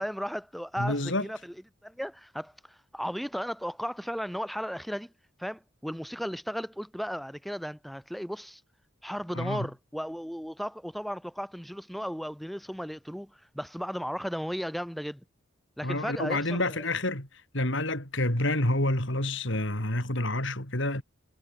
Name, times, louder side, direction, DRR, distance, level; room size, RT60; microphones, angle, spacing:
voice 1, 0.0-1.5 1.8-5.1 5.4-8.6 9.0-15.2 15.8-16.8, equal, ahead, 4.4 m, -35 dB
voice 2, 0.8-1.2 9.3-9.7 15.8-17.3 17.5-21.0, left 1 dB, 60° left, 5.1 m, -28 dB
head